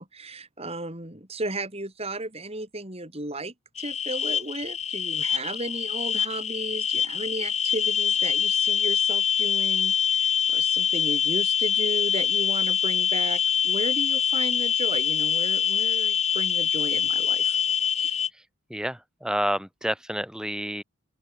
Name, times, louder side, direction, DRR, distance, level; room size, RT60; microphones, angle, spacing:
voice 1, 0.0-17.6 17.9-18.2, right 2 dB, 30° right, 5.5 m, -34 dB
sound 1, 3.8-18.3, left 8 dB, 30° left, 3.1 m, -24 dB
voice 2, 18.7-20.8, equal, 5° right, 2.0 m, -29 dB
open air
head